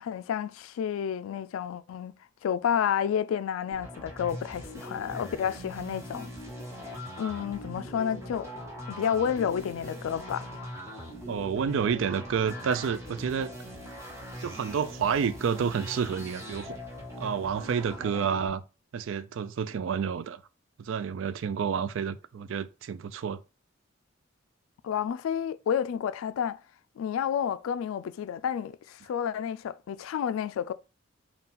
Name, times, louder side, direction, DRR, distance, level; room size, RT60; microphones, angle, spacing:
voice 1, 0.0-2.2 2.4-6.3 6.8-8.5 8.9-10.5 24.8-26.6 27.0-30.7, left 8 dB, 85° left, 0.3 m, -30 dB
sound 1, 3.7-18.5, equal, 15° right, 0.9 m, -41 dB
voice 2, 11.3-13.5 14.4-16.7 17.2-18.6 18.9-20.4 20.8-23.4, right 6 dB, 70° right, 0.3 m, -29 dB
3.7 x 2.3 x 4.1 m
head